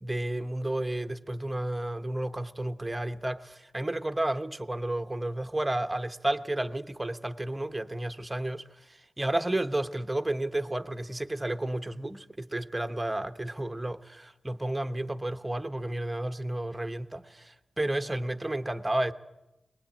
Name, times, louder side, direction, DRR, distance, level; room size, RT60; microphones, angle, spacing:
voice 1, 0.0-19.1, right 1 dB, 15° right, 1.0 m, -32 dB
22.0 x 20.0 x 8.7 m
wide cardioid pair, 75°, 0 cm